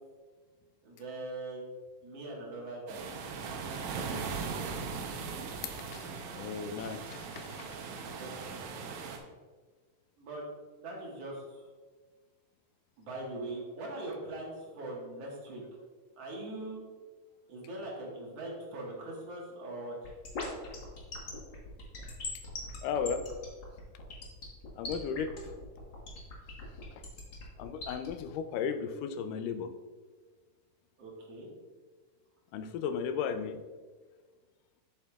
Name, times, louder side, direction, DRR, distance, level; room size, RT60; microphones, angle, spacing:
voice 1, 0.8-1.7 2.0-3.0 8.0-8.5 10.2-10.4 10.8-11.7 13.0-15.6 16.2-16.8 17.5-20.1 31.0-31.5, right 2 dB, 55° right, -3 dB, 2.3 m, -41 dB
sound 1, 2.9-9.2, right 5 dB, 75° right, 1.8 m, -39 dB
voice 2, 6.4-7.8 22.8-23.2 24.8-25.3 27.6-29.7 32.5-33.6, left 6 dB, 85° left, 9 dB, 2.1 m, -35 dB
sound 2, 20.0-28.1, left 3 dB, 55° left, 1.3 m, -41 dB
8.6 x 7.3 x 2.4 m, 1.4 s
omnidirectional pair, 3.8 m